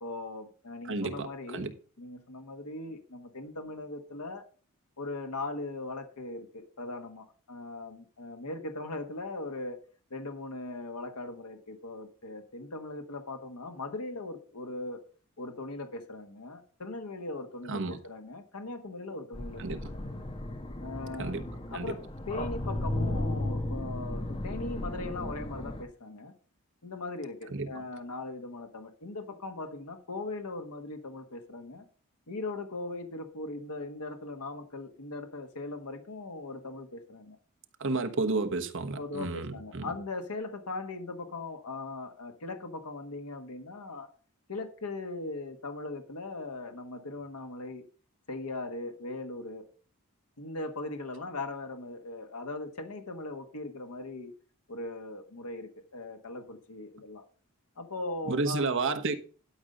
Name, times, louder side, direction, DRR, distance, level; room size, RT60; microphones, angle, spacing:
voice 1, 0.0-1.7 2.0-4.4 5.0-9.8 10.1-15.0 15.4-20.1 20.8-21.4 21.7-22.0 22.3-26.3 26.8-31.8 32.3-37.4 38.1-38.2 39.0-44.1 44.5-47.8 48.3-49.6 50.4-54.3 54.7-57.2 57.8-58.7, left 2 dB, 90° left, 1.3 m, -39 dB
voice 2, 0.9-1.7 17.7-18.0 19.6-19.9 21.2-21.4 21.7-21.9 27.5-27.7 37.8-39.9 58.3-59.1, right 3 dB, 60° right, 1.2 m, -31 dB
sound 1, 19.3-25.8, left 1 dB, 25° left, 1.1 m, -35 dB
12.0 x 5.2 x 5.4 m
head